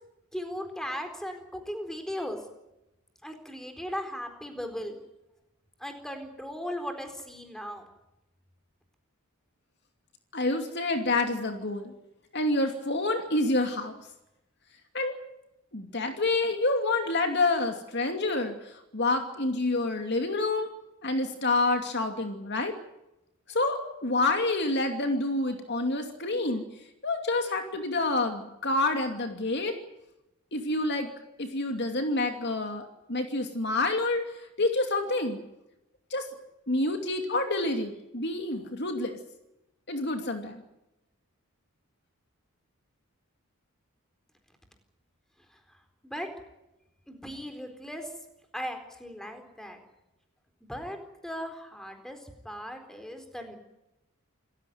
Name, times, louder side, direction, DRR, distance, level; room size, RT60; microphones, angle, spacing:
voice 1, 0.3-2.4 3.2-5.0 5.8-7.9 46.0-46.3 47.1-48.1 48.5-49.8 50.7-53.6, equal, ahead, 5 dB, 4.1 m, -37 dB
voice 2, 10.3-11.9 12.3-14.0 14.9-15.2 15.7-20.7 21.0-22.7 23.5-26.6 27.0-29.8 30.5-31.1 31.4-34.2 34.6-35.4 36.1-36.3 36.7-39.2 39.9-40.6, left 2 dB, 50° left, 5 dB, 2.6 m, -28 dB
28.5 x 15.0 x 9.4 m, 0.91 s
head